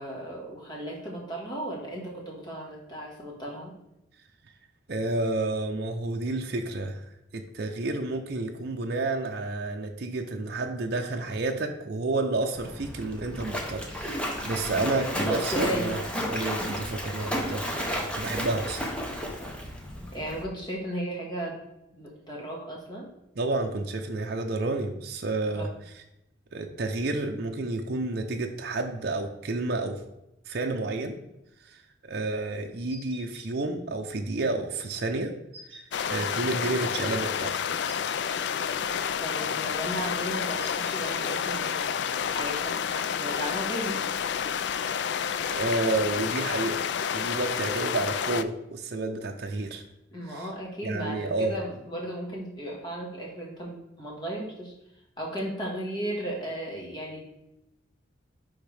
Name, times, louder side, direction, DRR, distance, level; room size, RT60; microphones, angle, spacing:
voice 1, 0.0-3.7 15.2-15.9 20.1-21.6 21.9-23.1 25.5-25.7 39.2-41.8 42.2-44.0 50.1-54.7 55.2-57.2, right 1 dB, 20° left, -2 dB, 1.7 m, -35 dB
voice 2, 4.9-7.0 7.3-16.0 16.3-17.7 18.0-18.9 23.4-25.7 26.5-30.0 30.5-31.1 31.6-31.8 32.1-35.3 35.7-37.8 45.5-46.9 47.1-49.8 50.3-50.5 50.8-51.6, right 2 dB, 55° right, 3 dB, 0.6 m, -30 dB
Splash splatter, 12.5-20.4, equal, 5° left, 0.9 m, -33 dB
sound 1, 32.9-33.4 35.5-36.0 37.8-38.4 40.6-41.2, right 1 dB, 30° right, 1.4 m, -47 dB
sound 2, 35.9-48.4, left 7 dB, 60° left, 0.3 m, -29 dB
10.0 x 3.6 x 3.4 m, 0.88 s
head